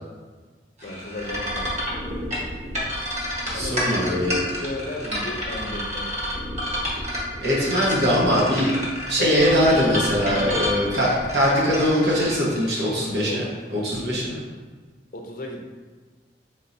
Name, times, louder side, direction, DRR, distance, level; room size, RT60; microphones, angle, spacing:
voice 1, 0.8-2.2 3.5-6.2 9.2-9.3 10.4-10.6 13.3-13.4 15.1-15.6, left 2 dB, 50° left, 1 dB, 0.6 m, -35 dB
sound 1, 0.8-13.3, equal, 40° right, 1.2 m, -29 dB
voice 2, 3.5-4.4 7.4-8.7 9.1-13.4 13.7-14.4, equal, 70° right, -5 dB, 1.1 m, -21 dB
4.2 x 3.6 x 2.6 m, 1.4 s
head